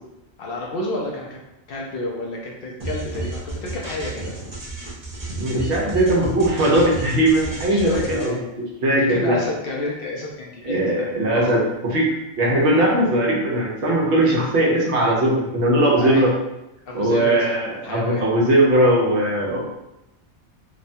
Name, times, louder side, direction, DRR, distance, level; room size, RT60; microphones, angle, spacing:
voice 1, 0.4-1.4 1.7-4.3 7.6-8.4 9.1-11.5 16.0-16.3 16.9-17.6 17.8-18.3, left 2 dB, 60° left, -2 dB, 0.7 m, -30 dB
sound 1, 2.8-8.3, right 3 dB, 40° right, 0.6 m, -32 dB
voice 2, 5.4-8.4 8.8-9.4 10.6-11.6 11.9-12.1 12.4-16.3 16.9-19.7, right 1 dB, 70° right, -2 dB, 1.0 m, -19 dB
2.9 x 2.1 x 2.6 m, 0.90 s
omnidirectional pair, 1.2 m